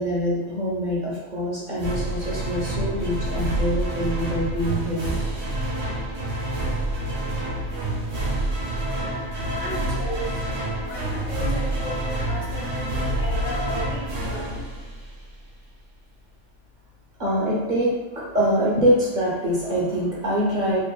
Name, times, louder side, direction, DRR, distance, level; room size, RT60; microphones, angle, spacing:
voice 1, 0.0-5.2 17.2-20.8, equal, 50° right, -6 dB, 0.6 m, -24 dB
sound 1, 1.8-15.4, right 1 dB, 70° right, 1.0 m, -27 dB
voice 2, 9.5-10.4 10.8-14.7, equal, 70° left, -4 dB, 1.1 m, -35 dB
2.9 x 2.5 x 2.2 m, 1.3 s
omnidirectional pair, 1.3 m